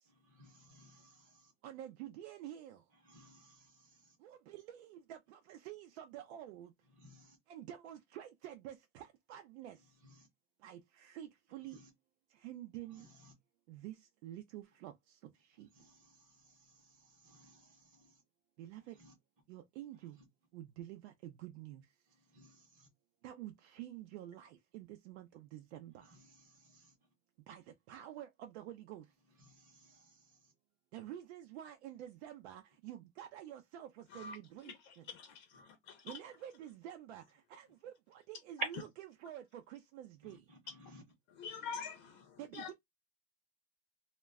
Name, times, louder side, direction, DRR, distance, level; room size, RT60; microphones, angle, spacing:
voice 1, 0.2-1.5 3.0-4.0 7.0-7.4 10.0-10.3 11.7-11.8 13.0-13.3 15.8-18.1 19.0-19.1 22.3-22.9 26.1-26.9 29.4-30.1 40.2-41.0, equal, 25° right, 0.8 m, -62 dB
voice 2, 1.6-2.8 4.2-6.7 7.5-9.9 10.6-11.8 12.3-13.1 13.7-15.7 18.6-19.0 19.5-20.2 20.5-21.9 23.2-26.2 27.5-29.1 30.9-35.1 36.0-40.5 42.4-42.7, right 12 dB, 90° right, 0.5 m, -49 dB
voice 3, 34.7-36.1 41.3-42.7, left 6 dB, 40° left, 0.5 m, -46 dB
2.2 x 2.1 x 3.4 m
supercardioid pair, 170°, 32 cm